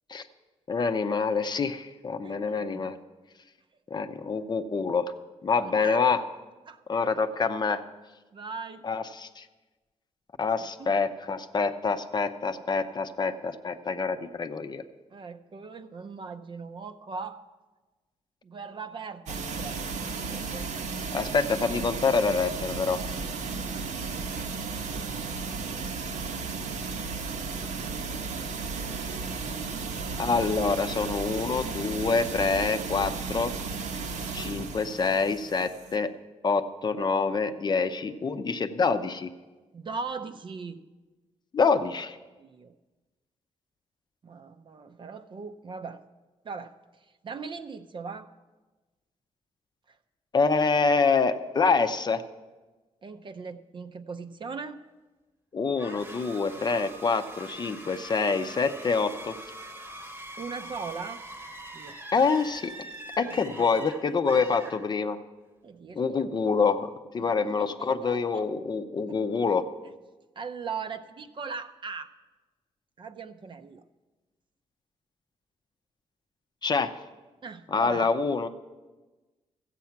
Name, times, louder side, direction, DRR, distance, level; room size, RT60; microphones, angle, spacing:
voice 1, 0.7-3.0 3.9-5.1 5.4-6.2 6.9-7.8 8.8-9.4 10.4-14.8 21.1-23.0 30.2-33.5 34.3-36.1 36.4-39.3 41.5-42.2 50.3-52.2 55.5-59.3 62.1-62.7 63.2-65.2 66.0-69.6 76.6-76.9 77.7-78.5, left 4 dB, 35° left, 9 dB, 0.6 m, -26 dB
voice 2, 2.2-3.0 3.9-4.1 5.7-6.0 6.7-6.8 8.3-8.8 10.8-11.0 15.1-17.5 18.4-19.8 20.3-20.7 24.9-25.1 26.6-26.8 27.8-28.0 39.7-40.8 42.4-42.7 44.2-46.0 46.4-46.7 47.2-48.3 49.9-50.0 53.0-54.8 60.4-61.2 61.7-62.2 63.2-63.4 65.6-66.3 67.2-68.4 69.1-69.2 70.4-72.1 73.0-73.8 77.4-78.1, right 5 dB, 40° right, 10 dB, 0.6 m, -39 dB
sound 1, 19.3-35.9, right 4 dB, 85° right, 1.1 m, -34 dB
sound 2, 55.8-65.3, right 1 dB, 15° right, 1.0 m, -43 dB
14.5 x 8.3 x 5.8 m, 1.2 s
wide cardioid pair, 135°, 12 cm